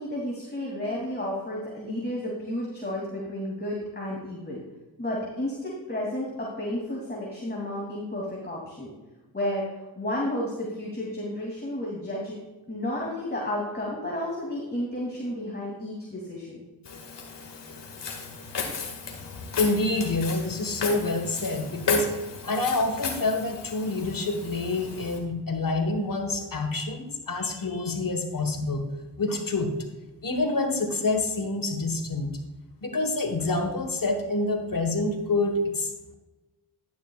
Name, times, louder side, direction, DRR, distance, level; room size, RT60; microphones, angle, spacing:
voice 1, 0.0-4.6 5.0-8.9 9.3-9.6 10.0-12.4 12.7-16.6, left 1 dB, 20° left, -4 dB, 2.8 m, -32 dB
Walk footsteps, 16.9-25.2, left 5 dB, 70° left, 2.0 m, -35 dB
voice 2, 19.5-22.1 22.4-28.9 29.2-29.8 30.2-32.4 32.8-36.1, left 2 dB, 50° left, 6 dB, 1.5 m, -27 dB
11.5 x 10.0 x 2.4 m, 1.1 s
cardioid pair, 50°, 43 cm